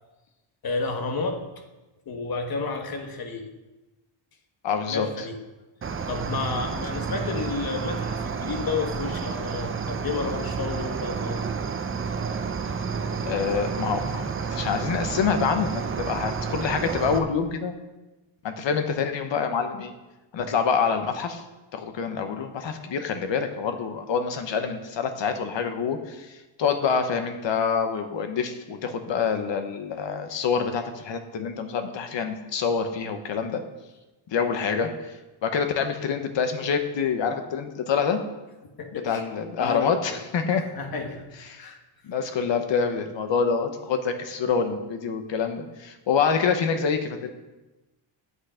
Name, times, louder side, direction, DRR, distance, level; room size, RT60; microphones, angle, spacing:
voice 1, 0.6-1.6 2.1-3.5 4.9-5.4 6.1-11.4 38.6-39.2 39.6-40.2 40.7-41.3 41.6-41.8, left 4 dB, 50° left, 5 dB, 1.4 m, -31 dB
voice 2, 4.6-5.1 13.2-14.2 14.5-17.8 18.4-19.9 20.3-21.4 21.7-33.6 34.3-35.2 35.4-38.2 38.9-40.6 41.5-41.6 42.0-47.3, left 6 dB, 65° left, 7 dB, 1.2 m, -26 dB
Cricket, 5.8-17.2, right 5 dB, 25° right, 0.6 m, -30 dB
9.6 x 8.3 x 5.1 m, 1.1 s
wide cardioid pair, 155°, 47 cm